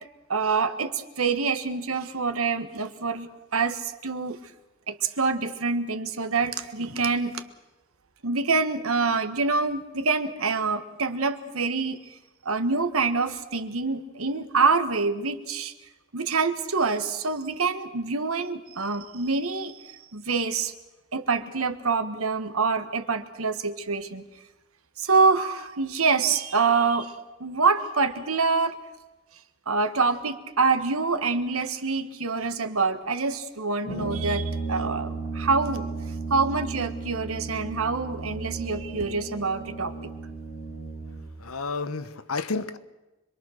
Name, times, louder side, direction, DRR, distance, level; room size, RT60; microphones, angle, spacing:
voice 1, 0.3-4.4 4.9-7.4 8.2-12.0 12.4-15.7 16.1-20.7 21.1-24.2 25.0-27.1 27.4-28.8 29.7-35.9 36.3-39.9, right 4 dB, 85° right, 9 dB, 1.4 m, -26 dB
Brass instrument, 33.8-41.3, right 3 dB, 55° left, 5.3 m, -34 dB
voice 2, 41.4-42.8, left 4 dB, 85° left, 11 dB, 1.2 m, -31 dB
26.0 x 22.0 x 6.5 m, 1.1 s
head